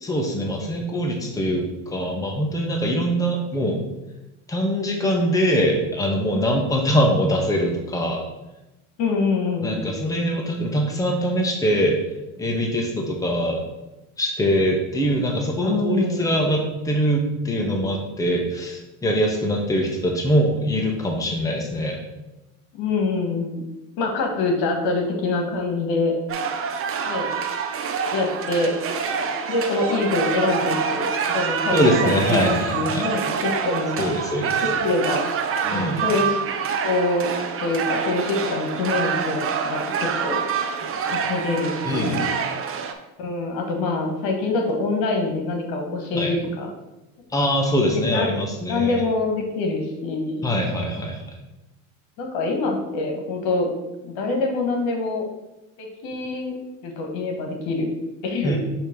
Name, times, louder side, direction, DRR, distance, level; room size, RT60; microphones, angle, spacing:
voice 1, 0.0-3.8 4.5-8.2 9.6-12.0 12.4-13.6 14.2-22.0 31.7-33.1 34.0-34.6 35.6-36.0 41.8-42.2 46.1-46.4 47.3-49.0 50.4-51.3 58.4-58.6, equal, 10° left, 0 dB, 1.1 m, -23 dB
voice 2, 9.0-9.8 15.6-16.2 22.7-23.6 24.0-26.1 27.1-27.3 28.1-28.7 29.5-34.1 34.8-35.2 35.7-36.4 36.7-37.2 37.6-40.4 41.1-42.3 43.2-46.7 47.9-48.3 48.7-50.4 52.2-53.7 54.0-55.3 55.8-56.5 56.8-57.9 58.2-58.6, left 3 dB, 65° left, 3 dB, 1.6 m, -25 dB
sound 1, 26.3-42.9, right 6 dB, 35° right, 0.7 m, -26 dB
6.6 x 3.1 x 5.2 m, 0.98 s
supercardioid pair, 105°, 39 cm